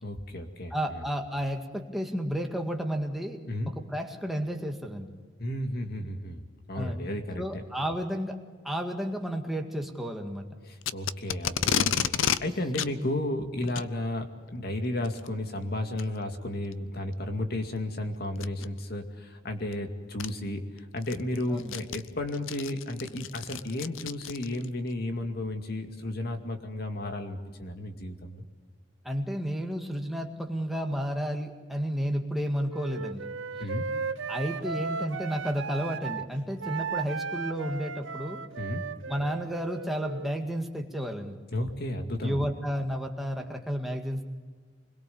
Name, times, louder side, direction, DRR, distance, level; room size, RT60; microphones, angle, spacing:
voice 1, 0.0-1.0 3.5-3.7 5.4-7.6 10.6-28.4 33.6-33.9 38.6-38.9 41.5-42.5, left 1 dB, 55° left, 5 dB, 2.3 m, -33 dB
voice 2, 0.7-3.4 3.9-5.1 6.8-7.0 7.4-8.4 8.6-10.5 12.3-12.5 21.5-21.7 29.0-33.3 34.3-38.4 39.1-41.4 42.2-44.3, equal, ahead, 2 dB, 1.9 m, -32 dB
Packing tape duct tape, 10.8-12.4 12.7-12.9 13.6-13.9 15.0-15.3 16.0-16.1 16.7-16.8 18.4-18.7 19.7-19.8 20.2-20.3 20.8-24.7, left 8 dB, 90° left, 0.7 m, -30 dB
Wind instrument woodwind instrument, 32.7-36.3 36.6-40.4, right 5 dB, 75° right, 0.9 m, -36 dB
25.5 x 21.5 x 7.1 m, 1.4 s
head